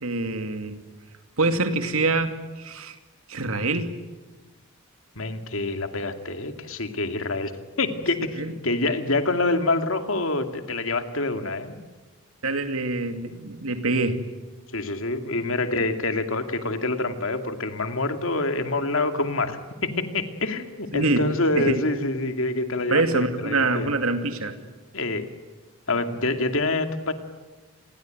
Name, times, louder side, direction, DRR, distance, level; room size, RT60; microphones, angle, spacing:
voice 1, 0.0-0.8 1.4-3.0 3.3-4.0 8.4-8.5 12.4-14.2 20.9-21.8 22.9-24.6, right 3 dB, 80° right, 8 dB, 2.5 m, -25 dB
voice 2, 5.2-11.7 14.7-23.9 24.9-25.3 25.9-27.1, left 2 dB, 70° left, 7 dB, 2.4 m, -26 dB
28.5 x 21.0 x 9.2 m, 1.2 s
head